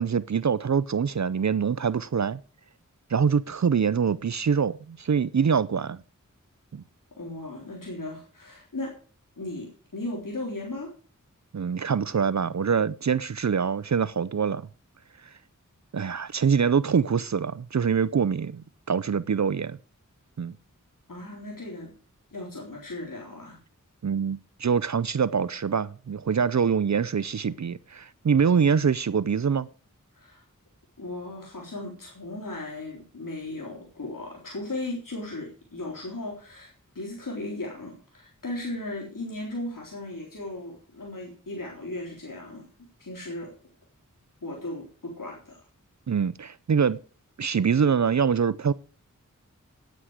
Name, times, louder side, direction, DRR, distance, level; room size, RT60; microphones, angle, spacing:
voice 1, 0.0-2.4 3.1-6.0 6.7-6.8 11.5-14.7 15.9-19.8 20.4-20.5 24.0-29.7 46.1-47.0 47.4-48.7, right 6 dB, 60° right, 0.6 m, -24 dB
voice 2, 7.2-8.9 9.4-10.9 21.1-21.9 22.3-23.6 30.1-30.4 31.0-42.7 43.0-43.5 44.4-45.6, left 2 dB, 85° left, 3.8 m, -36 dB
9.7 x 9.5 x 6.4 m
wide cardioid pair, 50°, 32 cm